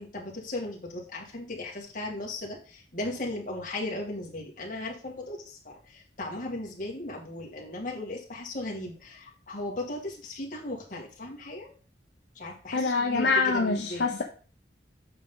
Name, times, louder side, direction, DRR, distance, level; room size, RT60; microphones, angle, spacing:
voice 1, 0.0-11.7 12.4-14.1, left 2 dB, 45° left, 2.4 m, -37 dB
voice 2, 12.7-14.2, left 4 dB, 70° left, 0.8 m, -25 dB
8.4 x 5.9 x 4.0 m
head